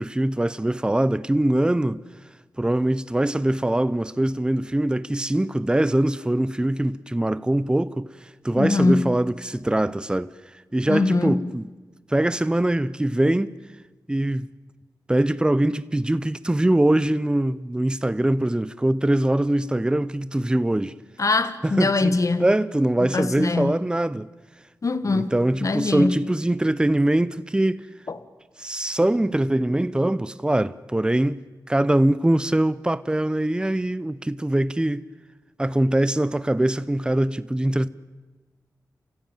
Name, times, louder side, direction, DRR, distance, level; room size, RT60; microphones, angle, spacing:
voice 1, 0.0-2.0 2.6-8.1 8.4-10.3 10.7-11.7 12.1-13.5 14.1-14.5 15.1-21.0 21.6-24.3 25.1-27.9 28.6-31.4 31.7-35.1 35.6-37.9, right 1 dB, 15° right, 0.7 m, -22 dB
voice 2, 8.5-9.1 10.9-11.5 21.2-22.5 23.0-23.8 24.8-26.2 28.1-28.2, left 3 dB, 55° left, 1.5 m, -23 dB
28.5 x 15.5 x 9.2 m
wide cardioid pair, 75°, 7 cm